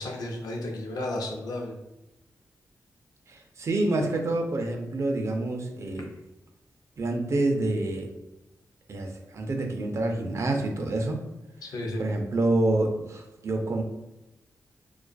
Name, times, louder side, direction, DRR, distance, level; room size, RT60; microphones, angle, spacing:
voice 1, 0.0-1.7 11.6-12.0, left 1 dB, 90° left, 0 dB, 0.5 m, -33 dB
voice 2, 3.3-6.1 7.0-8.1 8.9-11.2 12.0-13.8, right 2 dB, 50° right, 3 dB, 0.4 m, -27 dB
2.4 x 2.3 x 2.2 m, 0.93 s
wide cardioid pair, 110°, 6 cm